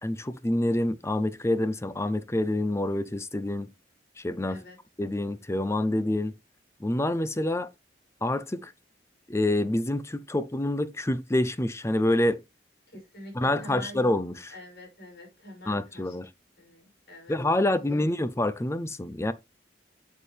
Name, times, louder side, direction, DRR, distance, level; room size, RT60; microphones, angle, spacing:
voice 1, 0.0-3.7 4.2-4.6 5.0-6.3 6.8-7.7 8.2-8.7 9.3-12.4 13.4-14.5 15.7-16.3 17.3-19.3, left 1 dB, 15° left, 0.6 m, -27 dB
voice 2, 4.5-4.8 12.9-14.0 14.5-16.2 16.6-17.4 17.8-18.1, left 1 dB, 60° left, 5.8 m, -46 dB
8.4 x 7.4 x 3.4 m
head